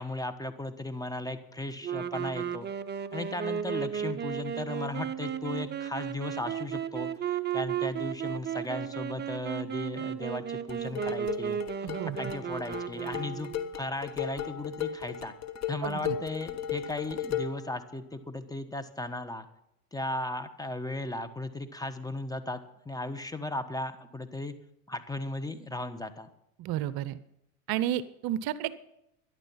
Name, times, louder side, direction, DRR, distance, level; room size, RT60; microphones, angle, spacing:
voice 1, 0.0-2.7 3.1-15.3 15.7-19.5 19.9-24.5 24.9-26.3, left 2 dB, 10° left, 9 dB, 1.2 m, -36 dB
sound 1, 1.8-13.7, right 8 dB, 20° right, 0.8 m, -34 dB
sound 2, 10.7-17.7, left 9 dB, 35° left, 1.5 m, -36 dB
voice 2, 11.8-12.3 15.8-16.2 26.6-27.2 27.7-28.8, right 12 dB, 50° right, 16 dB, 0.8 m, -32 dB
13.5 x 11.0 x 5.7 m, 0.82 s
hypercardioid pair, 95°, 47 cm